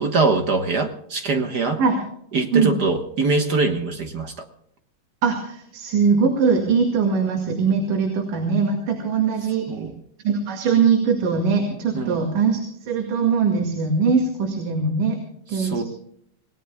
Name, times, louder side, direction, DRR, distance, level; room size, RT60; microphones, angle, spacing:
voice 1, 0.0-1.8 2.3-4.3 9.7-10.0 11.9-12.2 15.5-15.8, right 3 dB, 55° right, 5 dB, 1.1 m, -23 dB
voice 2, 5.2-9.7 10.2-15.2 15.5-15.8, right 5 dB, 80° right, 3 dB, 3.8 m, -21 dB
28.0 x 18.5 x 2.3 m, 0.70 s
omnidirectional pair, 3.6 m